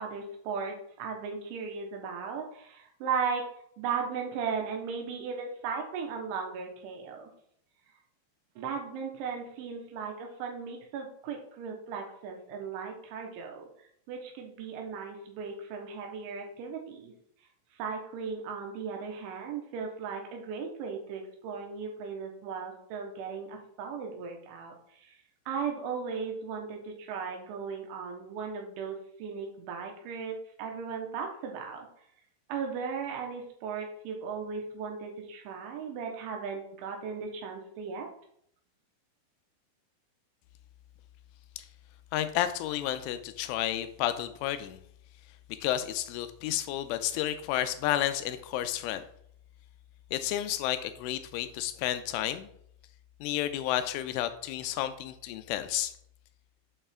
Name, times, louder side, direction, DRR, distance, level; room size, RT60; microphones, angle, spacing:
voice 1, 0.0-3.5 3.8-7.3 8.6-13.7 14.1-17.1 17.8-25.2 25.5-31.9 32.5-38.1, right 5 dB, 80° right, 2 dB, 3.5 m, -37 dB
voice 2, 42.1-44.8 45.6-49.0 50.1-52.5 53.2-55.9, left 12 dB, 90° left, 11 dB, 3.0 m, -31 dB
7.7 x 5.5 x 3.7 m, 0.68 s
omnidirectional pair, 5.5 m